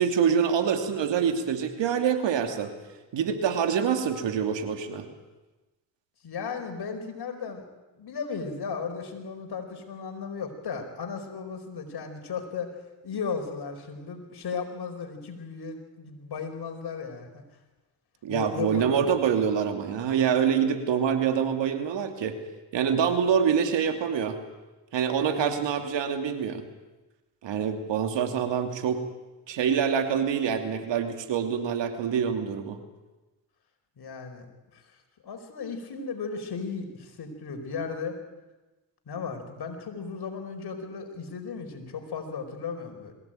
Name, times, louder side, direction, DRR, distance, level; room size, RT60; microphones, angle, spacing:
voice 1, 0.0-2.7 3.1-5.1 18.2-22.4 22.7-24.4 24.9-26.6 27.4-29.0 29.5-32.8, right 7 dB, 70° right, 6 dB, 2.8 m, -26 dB
voice 2, 6.2-7.6 7.9-12.7 13.0-17.4 18.3-19.0 25.3-25.6 34.0-34.5 34.7-34.8 35.2-38.1 39.1-43.1, left 5 dB, 55° left, 5 dB, 4.9 m, -35 dB
22.0 x 16.5 x 9.1 m, 1.1 s
supercardioid pair, 65°, 45 cm